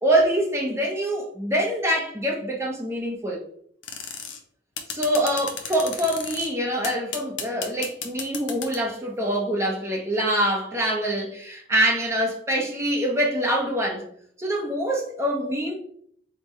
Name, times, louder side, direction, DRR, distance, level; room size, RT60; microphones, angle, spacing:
voice 1, 0.0-3.4 4.9-14.0 14.4-15.7, right 1 dB, 15° right, 0.8 m, -25 dB
sound 1, 3.8-4.4 4.8-6.5 6.8-8.9, left 6 dB, 65° left, 0.7 m, -33 dB
3.8 x 3.7 x 3.1 m
head